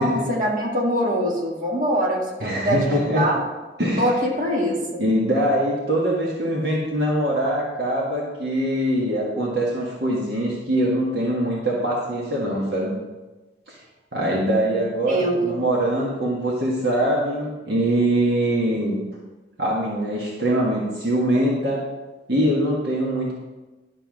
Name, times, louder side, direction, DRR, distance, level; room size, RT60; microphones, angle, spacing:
voice 1, 0.0-3.4 4.0-5.0 14.8-15.6, equal, 45° right, -3 dB, 1.9 m, -24 dB
voice 2, 2.4-3.2 3.8-4.1 5.0-12.9 13.7-13.8 14.1-19.0 19.6-21.8 22.3-23.3, right 1 dB, 60° right, -3 dB, 1.6 m, -23 dB
11.0 x 4.5 x 6.3 m, 1.2 s
head